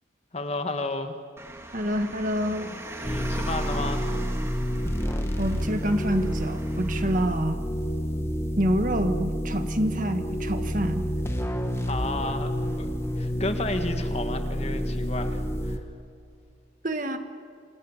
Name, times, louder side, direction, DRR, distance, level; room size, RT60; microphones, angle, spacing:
voice 1, 0.3-1.1 3.0-4.1 11.9-12.5 12.8-12.9 13.2-15.8, left 2 dB, 35° left, 7 dB, 1.8 m, -32 dB
Car, 1.4-7.2, right 1 dB, 15° right, 2.0 m, -40 dB
voice 2, 1.7-2.9 5.4-7.6 8.6-11.1 16.8-17.2, equal, 45° right, 7 dB, 1.6 m, -27 dB
sound 1, 3.0-15.8, equal, 15° left, 1.5 m, -29 dB
28.5 x 27.0 x 7.3 m, 2.5 s
head